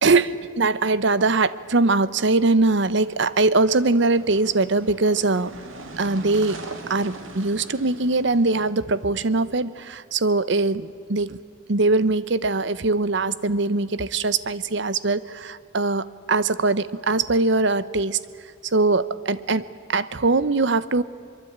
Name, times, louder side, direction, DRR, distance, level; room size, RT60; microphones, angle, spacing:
voice 1, 0.0-5.5 6.0-6.6 6.9-11.4 11.7-18.2 18.7-19.6 19.9-21.0, right 3 dB, 60° right, 16 dB, 0.8 m, -21 dB
sound 1, 2.6-9.6, right 2 dB, 85° right, 2.7 m, -42 dB
23.0 x 23.0 x 8.7 m, 2.3 s
head